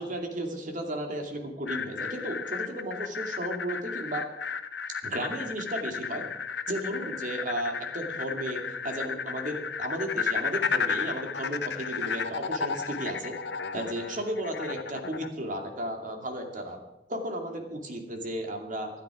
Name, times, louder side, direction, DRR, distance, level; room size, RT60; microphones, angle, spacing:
voice 1, 0.0-4.3 5.0-6.3 6.7-13.4 13.7-16.8 17.1-19.0, right 1 dB, 45° right, 4 dB, 2.5 m, -34 dB
sound 1, 1.7-15.3, left 6 dB, 65° left, 1.0 m, -33 dB
25.5 x 10.5 x 5.0 m, 0.94 s
head